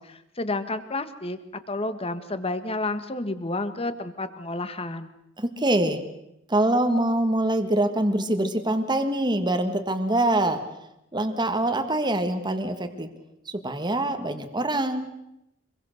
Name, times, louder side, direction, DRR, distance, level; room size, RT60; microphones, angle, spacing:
voice 1, 0.0-1.4 1.7-5.1, left 2 dB, 30° left, 11 dB, 1.6 m, -30 dB
voice 2, 5.4-6.0 6.5-10.6 11.1-13.1 13.4-15.1, right 1 dB, 25° right, 7 dB, 1.6 m, -24 dB
25.0 x 22.5 x 6.5 m, 0.85 s
head